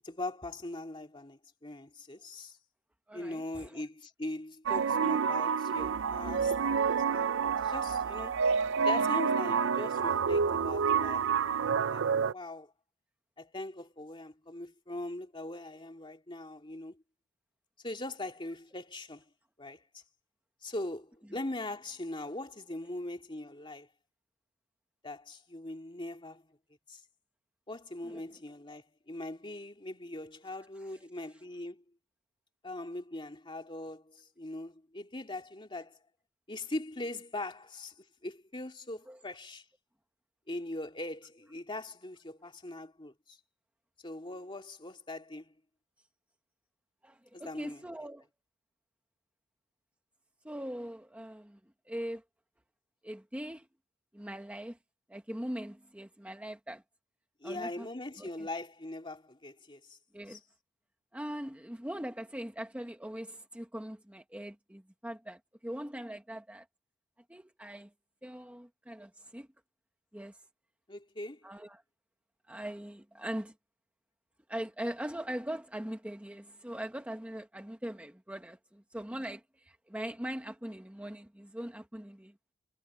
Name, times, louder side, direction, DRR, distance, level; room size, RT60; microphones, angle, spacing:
voice 1, 0.0-2.6 3.1-8.4 8.8-12.0 12.3-12.7 13.4-17.0 17.8-19.2 19.6-20.0 20.6-23.9 25.0-26.5 26.9-27.0 27.7-31.8 32.6-36.0 36.5-37.9 38.2-39.6 40.5-43.4 44.0-45.5 47.3-47.8 57.4-60.0 60.3-60.4 70.9-71.4, left 2 dB, 25° left, 2.6 m, -41 dB
voice 2, 3.1-3.8 28.0-28.2 30.9-31.0 39.1-39.2 47.0-48.3 50.4-51.6 51.9-52.2 53.0-53.7 54.1-54.8 55.1-56.8 57.4-57.9 58.2-58.5 60.1-60.4 61.1-66.7 67.3-67.9 68.2-69.5 70.1-70.4 71.4-71.8 72.5-73.5 74.5-82.3, right 1 dB, 5° right, 1.0 m, -41 dB
sound 1, 4.7-12.3, right 6 dB, 65° right, 0.5 m, -28 dB
head